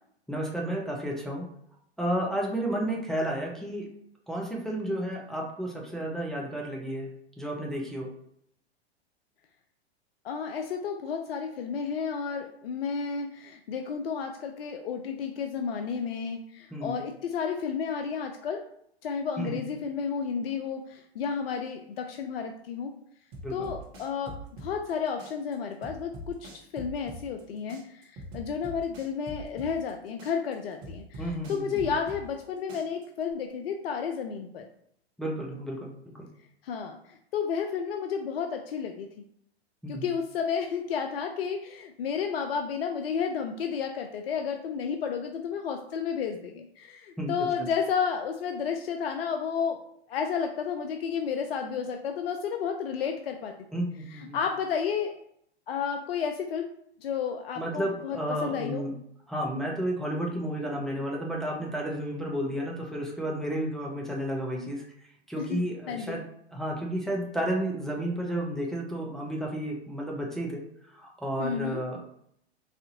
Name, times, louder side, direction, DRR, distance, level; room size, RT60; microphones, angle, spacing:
voice 1, 0.3-1.5 2.0-3.9 4.3-7.1 7.4-8.1 16.7-17.0 19.4-19.6 23.4-23.7 31.2-31.8 35.2-35.9 36.2-36.3 39.8-40.1 47.2-47.5 53.7-54.4 57.6-58.9 59.3-64.8 65.3-66.2 66.5-70.6 70.9-72.0, right 1 dB, ahead, -3 dB, 0.6 m, -32 dB
voice 2, 10.2-18.7 19.0-22.9 23.5-34.7 36.6-39.1 39.9-49.8 50.1-55.1 55.7-56.7 57.0-58.9 65.4-65.6 65.9-66.2 71.4-71.8, left 6 dB, 65° left, 5 dB, 0.5 m, -32 dB
sound 1, 23.3-24.9 25.2-27.4 27.7-29.9 30.2-32.4 32.7-33.3, left 1 dB, 40° right, 1.0 m, -42 dB
4.1 x 2.6 x 2.7 m, 0.70 s
figure-of-eight pair, 95°, 32 cm